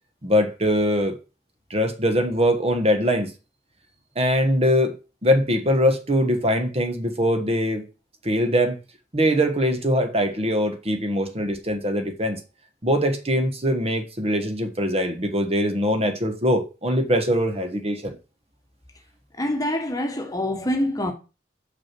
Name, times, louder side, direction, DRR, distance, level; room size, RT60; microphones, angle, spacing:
voice 1, 0.2-1.2 1.7-3.3 4.1-5.0 5.2-7.8 8.2-8.8 9.1-12.4 12.8-18.2, equal, 35° right, 1.4 m, -22 dB
voice 2, 19.3-21.1, left 1 dB, 20° left, 1.3 m, -25 dB
6.3 x 6.2 x 6.0 m
head